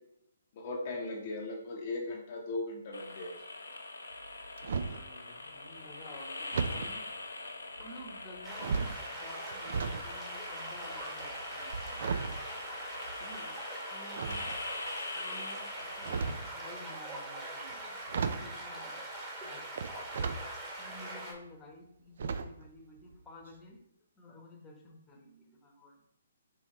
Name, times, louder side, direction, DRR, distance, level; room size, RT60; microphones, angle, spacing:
voice 1, 0.5-3.4, left 2 dB, 45° left, 0 dB, 0.8 m, -38 dB
sound 1, 2.9-16.3, left 2 dB, 80° left, 0.7 m, -43 dB
sound 2, 4.1-5.1 6.5-6.9 7.8-8.2 8.6-10.0 10.3-13.4 14.1-14.9 15.8-16.5 17.7-17.8 18.1-18.6 19.7-20.4 20.9-21.0 22.2-22.7 23.0-23.1 23.5-23.6, right 5 dB, 55° right, 0.4 m, -35 dB
voice 2, 4.9-7.0 7.8-12.0 13.2-13.5 13.9-14.5 15.1-18.0 18.4-19.0 19.4-19.9 20.8-23.8 24.2-26.2, left 1 dB, 15° left, 0 dB, 1.0 m, -52 dB
sound 3, 8.4-21.3, right 1 dB, 20° right, 1.4 m, -42 dB
4.6 x 3.9 x 3.0 m, 0.76 s
figure-of-eight pair, 130°, 0 cm